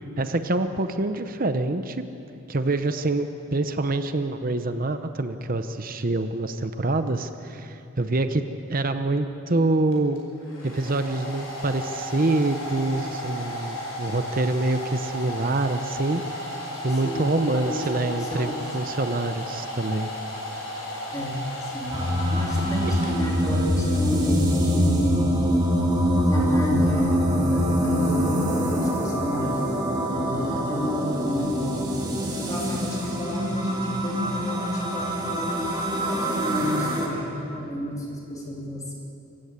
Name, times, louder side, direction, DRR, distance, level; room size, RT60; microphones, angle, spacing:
voice 1, 0.2-2.0 2.5-8.4 8.7-10.2 10.6-16.5 16.8-20.1, right 2 dB, 40° right, 9 dB, 0.8 m, -26 dB
Domestic sounds home sounds, 9.9-23.6, equal, 70° left, 6.0 m, -34 dB
voice 2, 16.9-18.6 21.1-22.0 22.3-25.2 26.3-31.8 32.4-35.7 36.0-38.9, left 1 dB, 15° left, -3 dB, 2.7 m, -31 dB
sound 1, 21.9-37.1, equal, 20° right, 2.7 m, -24 dB
26.0 x 15.5 x 8.1 m, 2.8 s
head